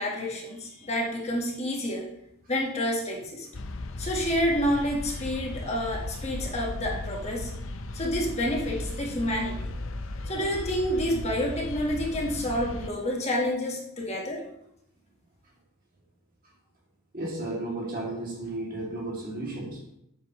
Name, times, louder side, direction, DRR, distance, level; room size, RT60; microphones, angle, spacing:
voice 1, 0.0-2.1 2.5-3.5 4.0-7.5 7.9-9.7 10.3-14.4, equal, 30° left, -1 dB, 1.4 m, -29 dB
sound 1, 3.5-12.9, left 2 dB, 65° left, 0.6 m, -36 dB
voice 2, 17.1-19.8, right 2 dB, 40° right, -2 dB, 2.4 m, -33 dB
9.1 x 8.1 x 3.1 m, 0.79 s
head